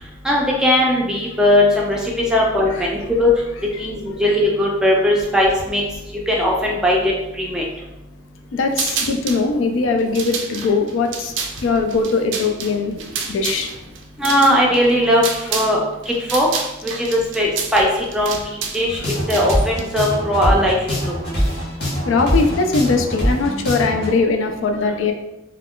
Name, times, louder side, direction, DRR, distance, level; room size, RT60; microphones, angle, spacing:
voice 1, 0.2-3.3 3.8-5.8 6.3-7.0 7.4-7.6 14.2-15.2 15.5-15.8 16.1-16.5 17.3-17.9 18.1-18.4 18.7-19.0 19.3-20.8, left 1 dB, 5° right, -3 dB, 0.4 m, -18 dB
voice 2, 8.5-11.3 11.6-12.9 13.3-13.7 22.1-25.1, left 4 dB, 80° left, 5 dB, 0.3 m, -20 dB
sound 1, 8.7-9.4 10.0-15.8 16.0-19.8, right 6 dB, 70° right, 0.4 m, -28 dB
sound 2, 18.9-24.1, equal, 55° left, 0.8 m, -23 dB
2.2 x 2.2 x 3.5 m, 0.94 s
head